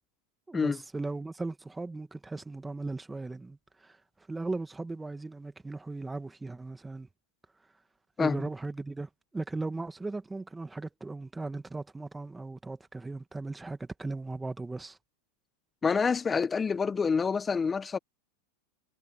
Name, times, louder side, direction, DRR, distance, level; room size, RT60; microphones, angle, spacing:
voice 1, 0.5-4.0 4.3-7.1 8.2-15.0, right 3 dB, 10° right, 2.0 m, -37 dB
voice 2, 15.8-18.0, left 5 dB, 20° left, 1.4 m, -27 dB
hypercardioid pair, 95°, 0 cm